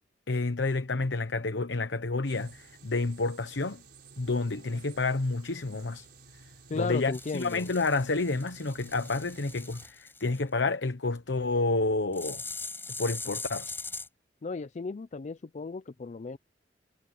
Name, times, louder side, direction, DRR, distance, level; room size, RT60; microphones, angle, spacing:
voice 1, 0.3-3.8 4.2-6.1 6.7-12.4 13.0-13.7, left 3 dB, 90° left, 1.0 m, -29 dB
sound 1, 2.2-9.9, right 3 dB, 65° right, 5.6 m, -53 dB
voice 2, 6.7-7.7 14.4-16.4, left 4 dB, 40° left, 0.4 m, -35 dB
sound 2, 7.1-10.4 12.1-14.1, left 3 dB, 15° left, 5.9 m, -41 dB
head